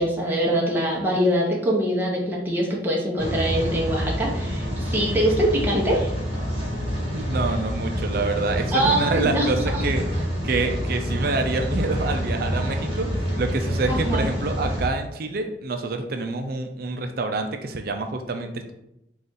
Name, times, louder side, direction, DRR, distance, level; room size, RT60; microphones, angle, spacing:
voice 1, 0.0-6.1 8.7-9.5 9.7-9.8 13.9-14.3, right 1 dB, 10° right, -4 dB, 0.8 m, -23 dB
Rain, 3.2-14.9, equal, 30° right, 1.3 m, -27 dB
voice 2, 7.0-18.7, right 3 dB, 55° right, 6 dB, 0.5 m, -27 dB
3.9 x 2.5 x 3.8 m, 0.81 s
head